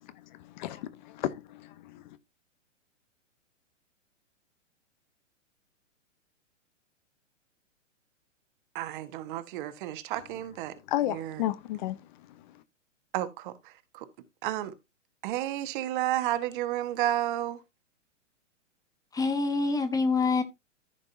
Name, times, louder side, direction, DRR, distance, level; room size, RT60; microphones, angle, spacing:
voice 1, 0.0-2.2 10.9-12.6, left 14 dB, 40° left, 0.7 m, -34 dB
voice 2, 8.7-10.7 11.1-11.4 13.1-14.1 14.4-14.7 15.2-17.6, right 13 dB, 40° right, 1.4 m, -32 dB
voice 3, 19.1-20.4, left 4 dB, 10° left, 1.0 m, -26 dB
14.5 x 5.3 x 2.7 m
figure-of-eight pair, 115°, 38 cm